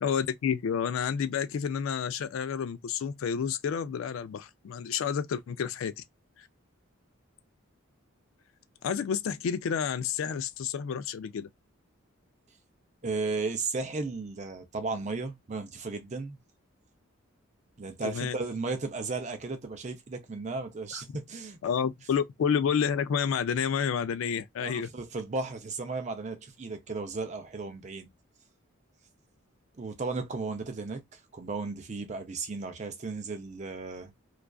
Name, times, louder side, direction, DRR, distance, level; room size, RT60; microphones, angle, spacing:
voice 1, 0.0-6.0 6.4-6.5 8.8-11.5 18.0-18.4 20.9-21.0 21.6-24.9, left 7 dB, 70° left, 0.3 m, -30 dB
voice 2, 13.0-16.4 17.8-21.6 24.6-28.1 29.8-34.1, right 3 dB, 35° right, 0.5 m, -35 dB
2.4 x 2.3 x 2.2 m
head